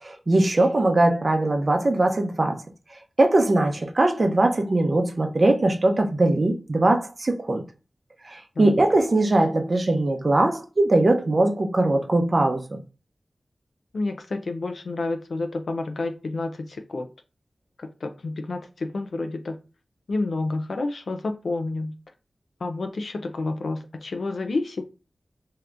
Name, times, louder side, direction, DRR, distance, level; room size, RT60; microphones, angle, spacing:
voice 1, 0.0-2.6 3.2-7.6 8.2-12.8, right 2 dB, 50° right, 0.6 m, -21 dB
voice 2, 13.9-17.1 18.0-19.6 20.1-21.9 22.6-24.8, left 2 dB, 80° left, 0.4 m, -29 dB
2.8 x 2.5 x 3.3 m
wide cardioid pair, 65°, 0 cm